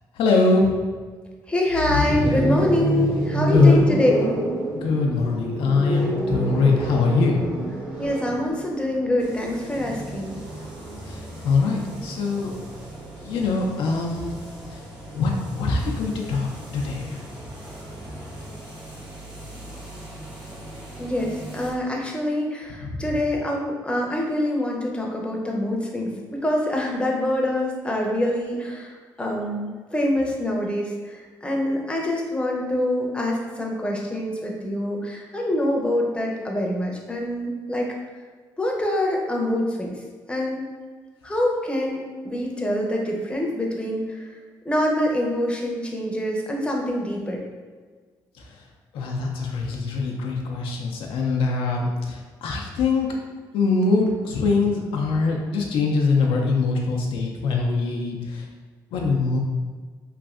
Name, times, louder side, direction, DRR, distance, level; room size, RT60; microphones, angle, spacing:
voice 1, 0.2-0.7 3.4-4.0 4.7-7.4 11.1-12.5 13.2-14.4 14.6-14.8 15.1-15.3 15.6-16.5 16.7-17.2 22.8-23.0 48.9-53.1 53.5-58.5 58.9-59.4, left 4 dB, 75° left, 0 dB, 0.4 m, -22 dB
voice 2, 1.5-4.1 8.0-10.4 21.0-37.9 38.6-40.0 40.3-40.7 41.2-44.2 44.6-47.4, left 1 dB, 10° left, -1 dB, 0.6 m, -25 dB
sound 1, 1.7-13.6 14.9-18.5, right 1 dB, 80° right, 1.4 m, -29 dB
sound 2, 9.2-21.7, right 1 dB, 60° right, 1.0 m, -41 dB
3.1 x 2.5 x 2.4 m, 1.5 s
supercardioid pair, 65°, 9 cm